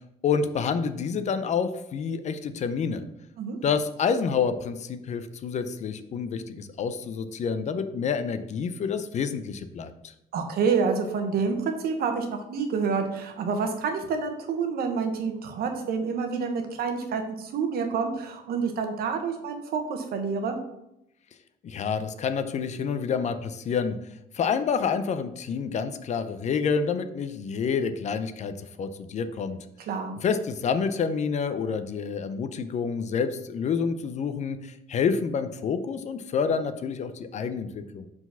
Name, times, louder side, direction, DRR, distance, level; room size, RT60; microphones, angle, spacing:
voice 1, 0.0-3.0 3.6-10.1 21.6-24.0 24.3-29.6 30.2-38.1, left 6 dB, 45° left, 11 dB, 0.5 m, -28 dB
voice 2, 10.3-20.6 29.9-30.1, right 5 dB, 65° right, 5 dB, 1.1 m, -28 dB
4.8 x 4.0 x 5.5 m, 0.83 s
cardioid pair, 110°, 17 cm